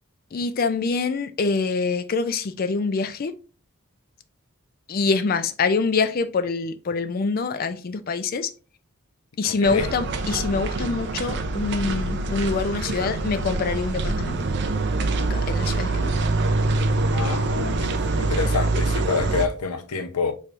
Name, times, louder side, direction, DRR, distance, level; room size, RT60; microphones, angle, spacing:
voice 1, 0.3-3.4 4.9-8.5 9.4-14.4 15.2-16.2, left 4 dB, 40° left, 0.4 m, -25 dB
voice 2, 9.4-9.9 17.1-20.3, left 5 dB, 90° left, 0.6 m, -27 dB
sound 1, 9.6-19.5, right 2 dB, 50° right, 0.5 m, -25 dB
4.4 x 3.3 x 2.4 m
head